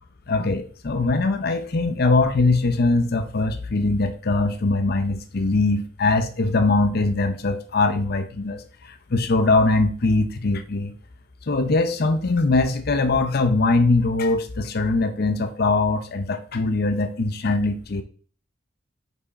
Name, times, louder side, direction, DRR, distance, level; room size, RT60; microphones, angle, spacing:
voice 1, 0.3-10.9 11.5-18.0, left 3 dB, 55° left, 8 dB, 0.6 m, -22 dB
5.4 x 4.7 x 4.1 m, 0.43 s
head